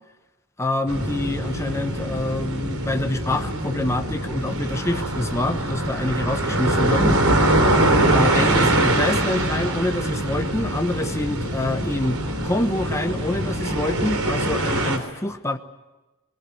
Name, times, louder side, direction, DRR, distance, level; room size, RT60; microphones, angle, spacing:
voice 1, 0.6-7.1 8.1-15.6, left 1 dB, 15° left, 5 dB, 1.1 m, -26 dB
sound 1, 0.9-15.0, right 1 dB, 85° right, 3.6 m, -23 dB
22.0 x 22.0 x 9.3 m, 1.1 s
head